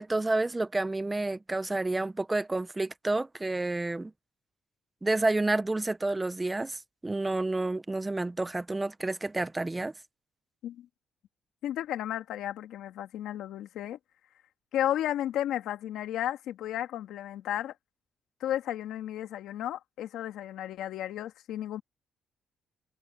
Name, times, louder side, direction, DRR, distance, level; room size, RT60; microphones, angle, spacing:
voice 1, 0.0-4.1 5.0-9.9, right 2 dB, 15° right, 1.0 m, -29 dB
voice 2, 11.6-14.0 14.7-17.7 18.4-21.8, left 12 dB, 85° left, 2.4 m, -33 dB
cardioid pair, 90°, 0 cm